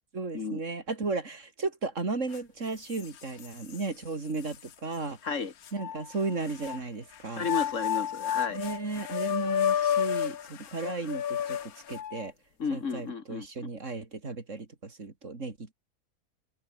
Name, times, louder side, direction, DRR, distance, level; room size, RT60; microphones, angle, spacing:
voice 1, 0.1-5.2 5.7-7.5 8.5-12.3 12.7-15.7, right 3 dB, 55° right, 3.5 m, -35 dB
sound 1, 2.3-2.4 2.9-3.8 4.5-4.6 5.7-6.8 7.4-12.3, left 9 dB, 85° left, 1.6 m, -31 dB
voice 2, 5.2-5.5 7.4-8.6 12.6-13.7, left 5 dB, 60° left, 2.0 m, -33 dB
omnidirectional pair, 1.5 m